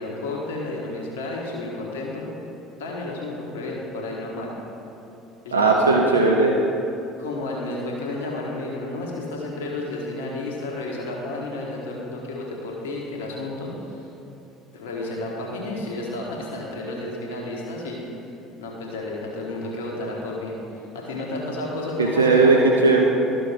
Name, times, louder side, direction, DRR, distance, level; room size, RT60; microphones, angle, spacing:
voice 1, 0.0-2.3 2.8-4.5 5.4-6.1 7.2-14.1 14.7-18.0 18.6-22.7, left 2 dB, 75° left, -2 dB, 1.4 m, -32 dB
voice 2, 5.5-6.6 22.0-23.0, right 3 dB, 85° right, 0 dB, 0.6 m, -17 dB
13.0 x 6.1 x 3.6 m, 2.8 s
figure-of-eight pair, 60°, 0 cm